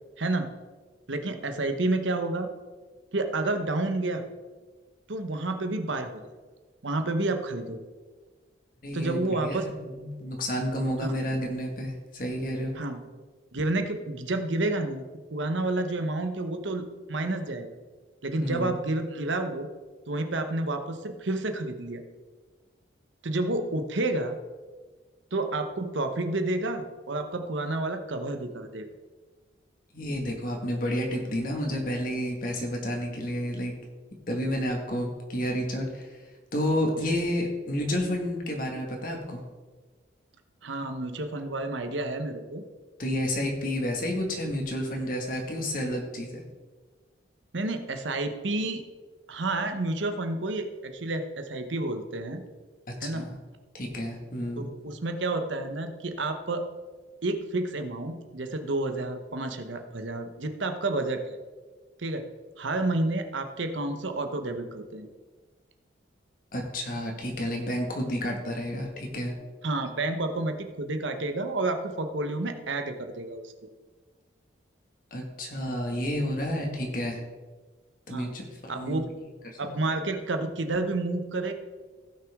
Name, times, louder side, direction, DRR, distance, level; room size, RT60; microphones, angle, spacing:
voice 1, 0.2-0.5 1.1-2.5 3.1-4.2 5.1-6.3 6.8-7.8 8.9-9.6 11.0-11.1 12.7-13.0 13.5-15.0 15.3-17.8 18.2-19.7 20.1-22.0 23.2-24.4 25.3-28.9 40.6-42.6 47.5-48.8 49.3-52.4 53.0-53.3 54.6-56.6 57.2-61.4 62.0-62.2 62.6-65.1 69.6-73.5 78.1-78.3 78.7-79.1 79.6-81.5, right 2 dB, 80° right, 7 dB, 1.0 m, -30 dB
voice 2, 8.8-12.7 18.4-18.7 29.9-33.7 34.3-36.2 36.5-39.4 43.0-46.4 53.0-53.4 53.7-54.7 66.5-69.3 75.1-77.2 78.1-78.4 78.7-79.0 79.4-79.6, equal, 45° left, 1 dB, 1.8 m, -30 dB
16.5 x 6.1 x 3.6 m, 1.4 s
head